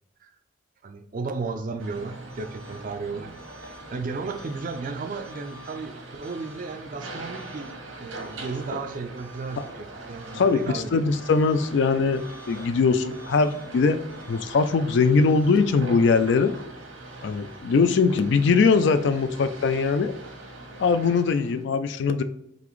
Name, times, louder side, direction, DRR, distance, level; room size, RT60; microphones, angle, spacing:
voice 1, 0.8-3.3 3.6-7.7 8.0-11.0, right 4 dB, 40° right, 7 dB, 0.4 m, -34 dB
sound 1, 1.8-21.6, right 2 dB, 85° right, 1.1 m, -42 dB
voice 2, 10.3-14.0 14.3-16.5 17.2-20.1 20.8-22.2, left 4 dB, 60° left, 11 dB, 0.3 m, -21 dB
4.0 x 3.3 x 3.1 m, 0.78 s
head